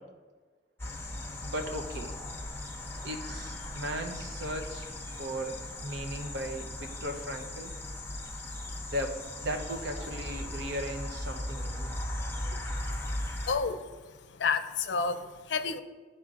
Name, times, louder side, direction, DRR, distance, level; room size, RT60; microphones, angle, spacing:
sound 1, 0.8-13.6, left 1 dB, 15° left, 0.9 m, -38 dB
voice 1, 1.4-2.1 3.0-5.6 5.8-7.7 8.8-11.9, equal, 80° right, 4 dB, 0.8 m, -37 dB
voice 2, 13.5-13.9 14.4-15.8, left 5 dB, 80° left, 10 dB, 0.5 m, -30 dB
12.0 x 4.3 x 2.5 m, 1.3 s
head